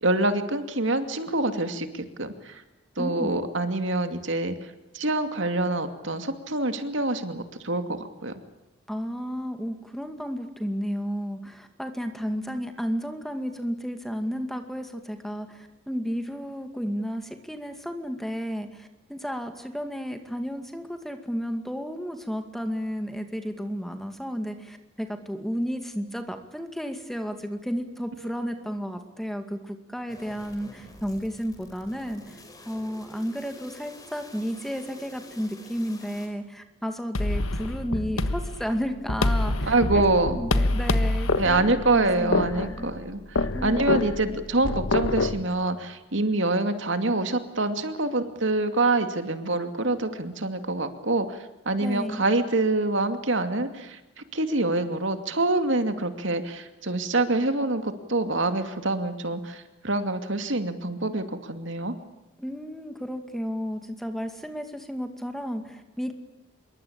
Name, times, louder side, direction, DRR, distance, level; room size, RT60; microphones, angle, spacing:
voice 1, 0.0-2.6 3.0-8.4 39.7-40.4 41.4-61.9, right 2 dB, 65° right, 8 dB, 2.5 m, -26 dB
voice 2, 3.0-3.4 8.9-42.9 43.5-44.1 51.8-52.3 62.4-66.1, equal, ahead, 6 dB, 2.2 m, -32 dB
sound 1, 30.1-36.3, left 1 dB, 20° left, 5.0 m, -48 dB
sound 2, 37.1-45.4, left 2 dB, 90° left, 1.4 m, -27 dB
26.5 x 23.5 x 8.8 m, 0.92 s
head